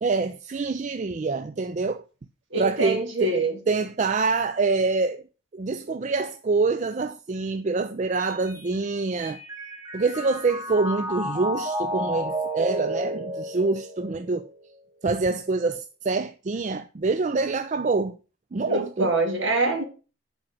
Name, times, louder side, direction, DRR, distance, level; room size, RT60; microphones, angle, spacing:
voice 1, 0.0-2.0 2.6-3.3 3.7-5.2 5.5-9.4 9.9-14.5 15.0-18.2 18.5-19.1, right 3 dB, 35° right, 0.4 m, -26 dB
voice 2, 2.5-3.5 18.6-19.8, right 2 dB, 60° right, 2.3 m, -25 dB
Mallet percussion, 8.2-14.6, right 1 dB, 15° right, 1.2 m, -32 dB
7.6 x 5.0 x 5.9 m
head